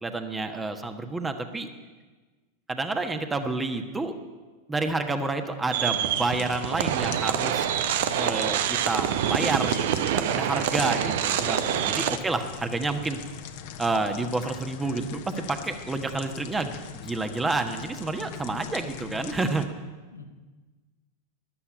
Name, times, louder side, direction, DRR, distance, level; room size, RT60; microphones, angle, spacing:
voice 1, 0.0-1.7 2.7-4.1 4.7-7.7 8.2-13.2 13.8-19.7, right 3 dB, 10° right, 7 dB, 1.3 m, -29 dB
sound 1, 5.7-12.2, right 10 dB, 55° right, 0.8 m, -26 dB
sound 2, 6.0-19.7, left 9 dB, 50° left, 1.1 m, -41 dB
voice 2, 11.7-12.2 20.1-20.2, left 3 dB, 80° left, 3 dB, 1.8 m, -43 dB
13.0 x 11.5 x 8.7 m, 1.3 s
figure-of-eight pair, 90°, 0 cm